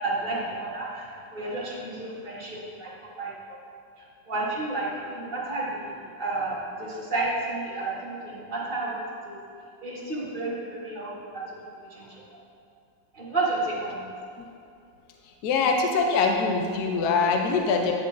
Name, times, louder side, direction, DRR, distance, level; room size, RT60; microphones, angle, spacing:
voice 1, 0.0-2.9 3.2-3.6 4.0-9.4 9.8-11.4 11.9-12.2 13.1-14.0, right 2 dB, 30° right, -7 dB, 1.7 m, -31 dB
voice 2, 15.4-17.9, left 4 dB, 65° left, 2 dB, 1.1 m, -23 dB
10.0 x 7.1 x 2.6 m, 2.5 s
omnidirectional pair, 2.0 m